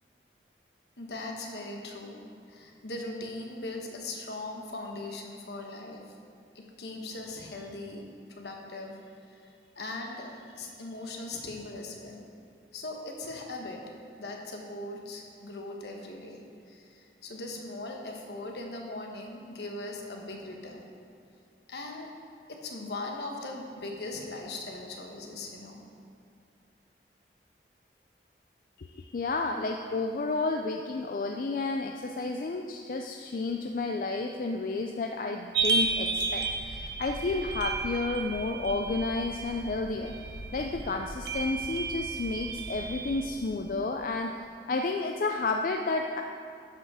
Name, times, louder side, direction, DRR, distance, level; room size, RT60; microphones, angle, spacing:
voice 1, 1.0-6.2 6.5-12.2 12.7-13.8 14.2-20.8 21.7-22.1 22.5-25.8, left 2 dB, 75° left, 1 dB, 1.2 m, -40 dB
voice 2, 28.8-40.1 40.5-46.2, left 3 dB, 50° left, 4 dB, 0.4 m, -31 dB
sound 1, 35.5-43.6, right 4 dB, 70° right, 0.7 m, -33 dB
12.0 x 5.5 x 4.8 m, 2.3 s
head